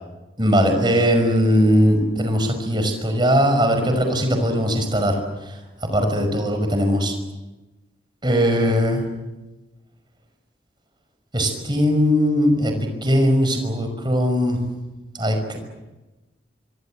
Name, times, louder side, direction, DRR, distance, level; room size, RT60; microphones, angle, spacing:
voice 1, 0.4-5.6 5.9-7.1 8.2-9.0 11.3-14.6 15.1-15.6, equal, 25° right, 5 dB, 5.6 m, -20 dB
25.5 x 24.5 x 7.7 m, 1.1 s
head